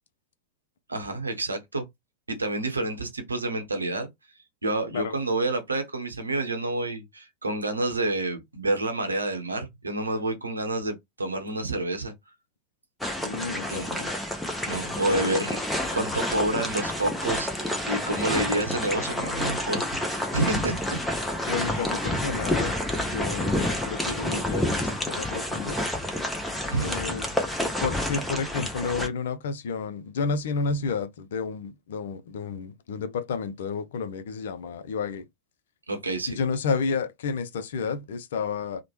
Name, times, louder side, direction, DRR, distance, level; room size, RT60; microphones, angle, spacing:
voice 1, 0.9-1.8 2.3-4.1 4.6-12.1 13.7-14.0 14.7-15.6 15.9-21.0 21.5-21.8 26.7-26.9 35.9-36.4, right 2 dB, 80° right, 0.7 m, -29 dB
sound 1, 13.0-29.1, left 1 dB, 5° left, 0.7 m, -29 dB
voice 2, 13.2-14.1 15.0-15.5 21.5-22.7 23.1-25.8 26.8-27.3 27.8-35.2 36.3-38.8, left 5 dB, 60° left, 0.4 m, -31 dB
3.0 x 2.1 x 2.9 m
figure-of-eight pair, 90°, 0 cm